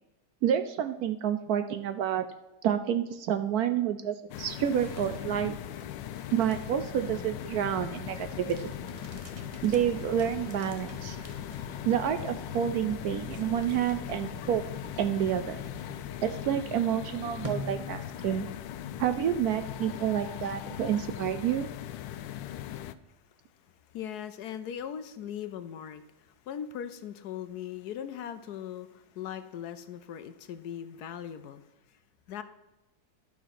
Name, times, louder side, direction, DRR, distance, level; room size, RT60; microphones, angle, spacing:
voice 1, 0.4-2.3 2.6-5.6 6.3-8.7 9.6-11.2 11.8-14.6 15.0-15.6 16.2-18.5 19.0-21.7, right 9 dB, 70° right, 9 dB, 0.9 m, -29 dB
sound 1, 4.3-22.9, left 11 dB, 90° left, 1.3 m, -39 dB
sound 2, 4.6-18.5, right 2 dB, 30° right, 0.6 m, -49 dB
sound 3, 6.9-16.2, left 1 dB, ahead, 1.1 m, -47 dB
voice 2, 23.1-32.0 32.3-32.4, left 9 dB, 70° left, 11 dB, 1.1 m, -40 dB
11.5 x 5.9 x 5.8 m, 1.0 s
omnidirectional pair, 1.9 m